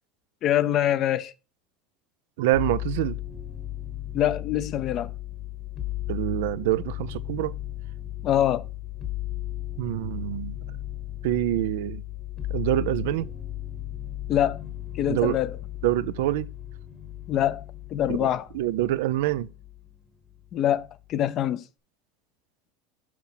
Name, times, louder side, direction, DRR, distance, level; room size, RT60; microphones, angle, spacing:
voice 1, 0.4-1.3 4.1-5.1 8.2-8.6 14.3-14.6 14.9-15.6 17.3-17.6 17.9-18.4 20.5-21.6, left 11 dB, 45° left, 0.6 m, -24 dB
voice 2, 2.4-3.2 6.1-7.6 9.8-10.6 11.2-12.0 12.5-13.3 15.1-15.4 15.8-16.5 18.1-18.3 18.5-19.5, right 14 dB, 75° right, 0.4 m, -26 dB
sound 1, 2.5-20.0 20.3-21.1, left 13 dB, 30° left, 1.1 m, -36 dB
5.9 x 5.8 x 4.0 m
hypercardioid pair, 95°, 0 cm